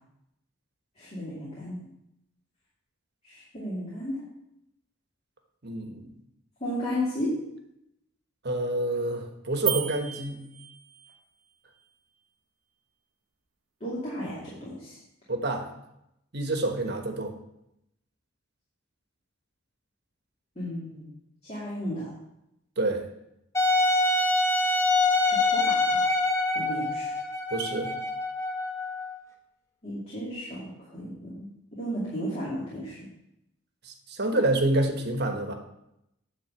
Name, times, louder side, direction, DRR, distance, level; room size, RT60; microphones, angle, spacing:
voice 1, 1.0-1.8 3.2-4.2 6.6-7.4 13.8-15.0 20.6-21.0 21.5-22.1 25.2-26.0 26.5-27.2 29.8-33.1, equal, 30° left, -8 dB, 2.6 m, -34 dB
voice 2, 5.6-6.1 8.4-10.4 15.3-15.7 16.3-17.3 22.8-23.0 27.5-27.9 33.8-35.5, right 2 dB, 55° right, 4 dB, 1.3 m, -27 dB
sound 1, 9.7-11.2, right 12 dB, 80° right, 1.1 m, -33 dB
Wind instrument woodwind instrument, 23.5-29.2, left 2 dB, 15° left, 1.2 m, -25 dB
9.7 x 4.2 x 7.6 m, 0.83 s
head